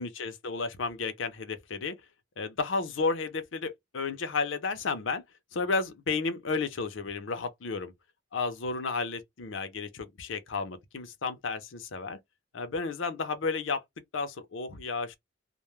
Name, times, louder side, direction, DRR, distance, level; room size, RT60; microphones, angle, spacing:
voice 1, 0.0-2.0 2.4-5.2 5.5-7.9 8.3-12.2 12.5-13.8 14.1-15.2, left 4 dB, 75° left, 0.6 m, -32 dB
2.2 x 2.1 x 3.0 m
head